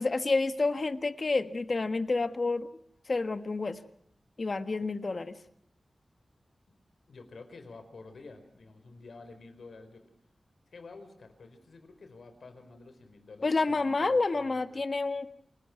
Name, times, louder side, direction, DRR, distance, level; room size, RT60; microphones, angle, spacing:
voice 1, 0.0-2.7 3.1-3.8 4.4-5.4 13.4-15.3, left 3 dB, 45° left, 11 dB, 1.4 m, -29 dB
voice 2, 7.1-10.0 10.7-14.8, left 3 dB, 80° left, 8 dB, 4.5 m, -50 dB
29.0 x 19.5 x 6.0 m, 0.71 s
wide cardioid pair, 95°, 0 cm